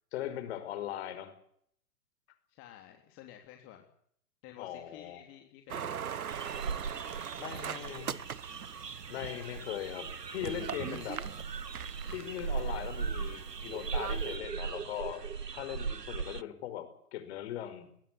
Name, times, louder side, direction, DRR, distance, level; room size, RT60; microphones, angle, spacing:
voice 1, 0.1-1.3 4.6-5.2 7.4-8.1 9.1-11.2 12.1-15.3 15.5-17.9, left 11 dB, 40° left, 11 dB, 5.3 m, -39 dB
voice 2, 2.5-3.9 4.4-6.0 9.1-9.7 11.6-11.7, left 11 dB, 25° left, 4 dB, 3.4 m, -53 dB
sound 1, 5.7-14.4, right 8 dB, 65° right, 1.5 m, -42 dB
sound 2, 6.3-16.4, right 5 dB, 85° right, 1.1 m, -38 dB
21.5 x 20.5 x 8.5 m, 0.67 s
figure-of-eight pair, 120°, 47 cm